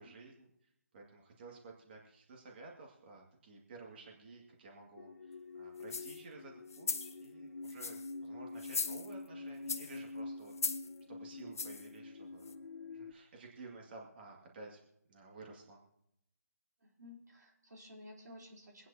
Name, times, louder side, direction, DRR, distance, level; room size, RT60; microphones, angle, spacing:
voice 1, 0.0-10.5 11.1-12.6 12.9-14.8 15.1-15.8, right 3 dB, 35° right, -1 dB, 2.1 m, -53 dB
sound 1, 5.0-13.1, left 3 dB, 80° left, 0.9 m, -47 dB
sound 2, 5.8-6.2 6.7-7.2 7.6-8.1 8.6-9.3 9.7-10.0 10.5-10.9 11.5-11.9 12.5-12.6, left 5 dB, 55° left, 1.0 m, -38 dB
voice 2, 16.8-18.9, left 1 dB, 75° right, 0 dB, 3.5 m, -54 dB
24.5 x 9.4 x 2.8 m, 0.77 s
figure-of-eight pair, 160°, 9 cm